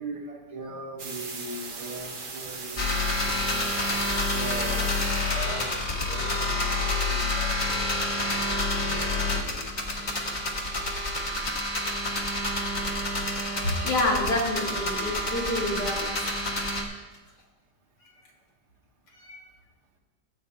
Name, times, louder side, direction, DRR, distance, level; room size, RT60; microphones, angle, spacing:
voice 1, 0.0-3.6 4.1-10.2, right 2 dB, 70° right, 0 dB, 1.9 m, -41 dB
sound 1, 1.0-5.4, right 4 dB, 40° right, 0.8 m, -37 dB
sound 2, 2.8-16.8, left 2 dB, 30° left, 1.0 m, -28 dB
voice 2, 13.8-16.5 19.1-19.4, left 1 dB, 80° left, -4 dB, 2.7 m, -28 dB
14.5 x 8.2 x 2.6 m, 1.2 s
omnidirectional pair, 1.8 m